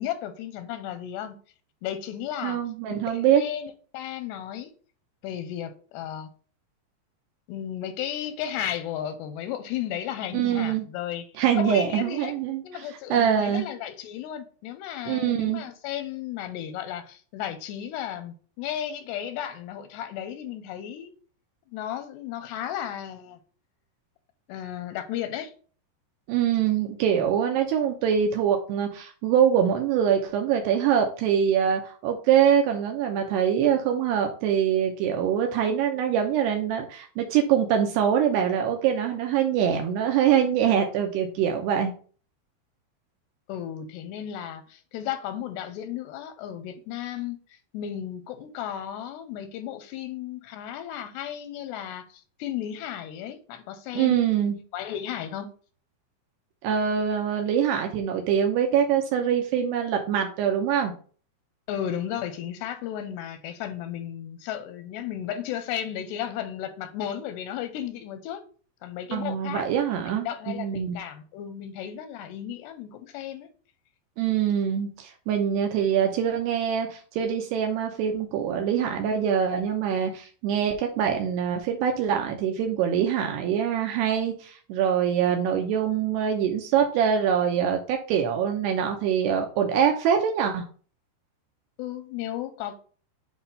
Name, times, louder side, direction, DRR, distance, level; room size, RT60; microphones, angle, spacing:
voice 1, 0.0-1.4 1.8-2.6 2.9-4.7 5.2-6.3 7.5-11.3 11.5-12.3 12.6-21.1 21.7-23.4 24.5-25.5 43.5-54.2 54.7-55.5 61.7-68.4 68.8-73.5 91.8-92.8, left 10 dB, 85° left, 2.7 m, -34 dB
voice 2, 2.4-3.4 10.3-10.9 11.4-12.9 13.1-13.7 15.1-15.6 26.3-41.9 53.9-54.6 56.6-60.9 69.1-71.0 74.2-90.6, right 8 dB, 80° right, 2.8 m, -24 dB
8.3 x 3.0 x 5.5 m
omnidirectional pair, 5.0 m